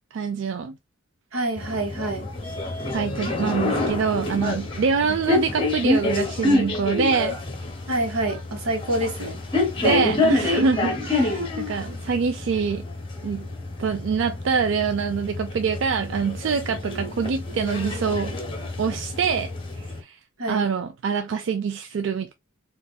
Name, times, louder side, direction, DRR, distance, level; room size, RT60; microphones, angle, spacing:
voice 1, 0.1-0.7 2.9-7.4 9.8-12.8 13.2-13.5 13.8-18.4 18.8-19.5 19.8-20.2 20.5-22.3, right 5 dB, 60° right, 0.3 m, -25 dB
voice 2, 1.3-2.3 5.1-5.2 7.9-9.4 20.4-20.7, right 1 dB, 85° right, 1.2 m, -27 dB
sound 1, 1.6-20.0, left 2 dB, 25° left, 0.8 m, -27 dB
4.0 x 2.5 x 2.2 m
head